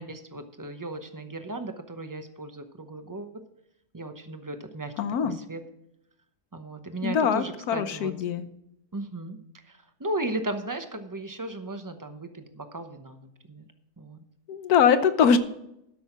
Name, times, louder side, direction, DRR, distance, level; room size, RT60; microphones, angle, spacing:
voice 1, 0.0-3.4 3.9-4.9 5.2-5.6 6.5-8.1 8.9-9.4 10.0-13.7 14.0-14.2, right 2 dB, 20° right, 7 dB, 0.6 m, -36 dB
voice 2, 5.0-5.4 7.0-8.4 14.5-15.4, left 7 dB, 70° left, 11 dB, 1.3 m, -22 dB
12.5 x 6.3 x 5.8 m, 0.81 s
omnidirectional pair, 1.7 m